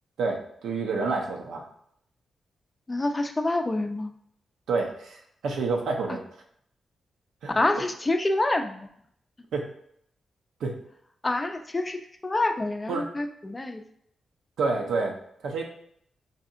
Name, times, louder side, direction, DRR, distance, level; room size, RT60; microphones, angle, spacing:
voice 1, 0.2-1.6 4.7-6.2 7.4-7.5 9.5-9.7 10.6-10.8 12.9-13.0 14.6-15.2 15.4-15.6, right 4 dB, 90° right, 1 dB, 0.6 m, -28 dB
voice 2, 2.9-4.1 6.1-6.2 7.6-8.9 11.2-13.8, left 2 dB, 25° left, 6 dB, 0.4 m, -27 dB
4.1 x 2.6 x 2.4 m, 0.69 s
cardioid pair, 80°, 0 cm